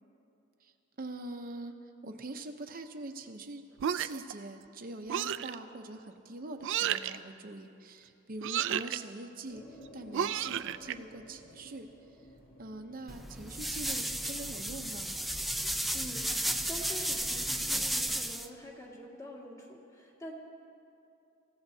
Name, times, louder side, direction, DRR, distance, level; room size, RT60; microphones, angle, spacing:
voice 1, 0.6-1.7 2.0-3.6 3.9-11.9 12.2-12.3 12.6-15.1, right 2 dB, 45° right, 5 dB, 0.7 m, -43 dB
sound 1, 3.8-4.3 5.1-5.6 6.6-7.2 8.4-9.0 10.1-10.9, right 10 dB, 60° right, 0.4 m, -32 dB
sound 2, 9.5-14.6, equal, 45° left, 2.4 m, -54 dB
sound 3, 13.1-18.5, right 1 dB, ahead, 0.5 m, -33 dB
voice 2, 15.9-16.3 16.7-20.3, left 1 dB, 15° left, -2 dB, 2.0 m, -45 dB
28.0 x 15.5 x 2.8 m, 2.7 s
head